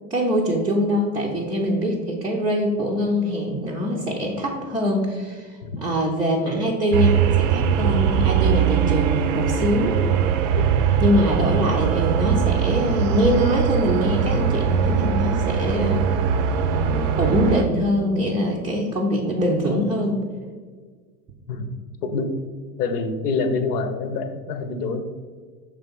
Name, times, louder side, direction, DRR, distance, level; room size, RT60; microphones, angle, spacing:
voice 1, 0.1-10.0 11.0-16.1 16.7-20.2, equal, 10° right, -4 dB, 0.5 m, -23 dB
sound 1, 6.9-17.6, right 7 dB, 50° right, 0.6 m, -21 dB
voice 2, 22.0-22.3 22.8-25.0, left 4 dB, 65° left, 8 dB, 1.0 m, -26 dB
5.8 x 3.4 x 5.3 m, 1.6 s
hypercardioid pair, 110°, 49 cm